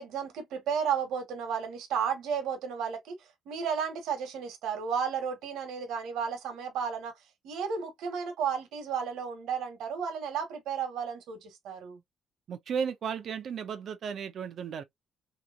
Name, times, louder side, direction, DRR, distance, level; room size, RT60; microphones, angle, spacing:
voice 1, 0.0-7.1 7.4-12.0, right 7 dB, 85° right, 1.3 m, -33 dB
voice 2, 12.5-14.8, right 7 dB, 60° right, 0.8 m, -34 dB
3.0 x 3.0 x 2.5 m
cardioid pair, 90°, 0 cm